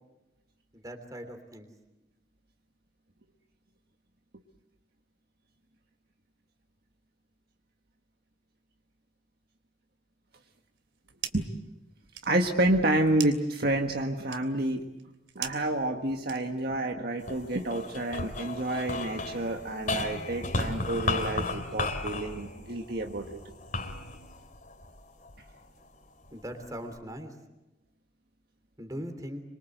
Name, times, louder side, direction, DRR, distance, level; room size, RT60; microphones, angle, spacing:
voice 1, 0.7-1.7 26.3-27.3 28.8-29.4, equal, 20° right, 6 dB, 3.2 m, -40 dB
sound 1, 10.7-11.6 11.9-16.8, right 10 dB, 90° right, 3.0 m, -43 dB
voice 2, 12.3-14.8 15.3-23.5, right 1 dB, 55° right, 3 dB, 1.6 m, -29 dB
sound 2, 17.2-25.7 26.2-27.0, left 2 dB, 45° left, 2.8 m, -35 dB
26.0 x 23.5 x 8.0 m, 0.98 s
head